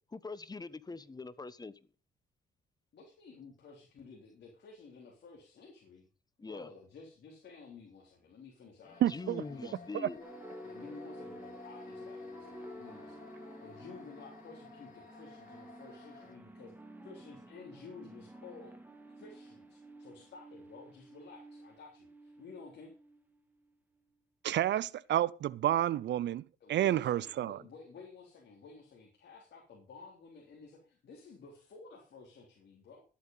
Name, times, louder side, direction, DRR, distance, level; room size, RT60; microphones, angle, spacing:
voice 1, 0.1-1.7 6.4-6.7 9.1-10.3, left 3 dB, 20° left, 1.0 m, -43 dB
voice 2, 2.9-6.1 6.4-9.1 9.4-9.9 10.6-13.3 13.6-18.7 19.2-22.9 26.6-33.0, left 4 dB, 60° left, 3.6 m, -53 dB
sound 1, 8.8-16.4, left 4 dB, 45° left, 4.4 m, -55 dB
voice 3, 9.0-9.4 10.0-10.1 24.4-26.4 26.7-27.6, right 12 dB, 65° right, 0.5 m, -29 dB
sound 2, 10.2-23.6, equal, 10° right, 2.4 m, -51 dB
12.5 x 8.6 x 5.5 m
cardioid pair, 90°, 20 cm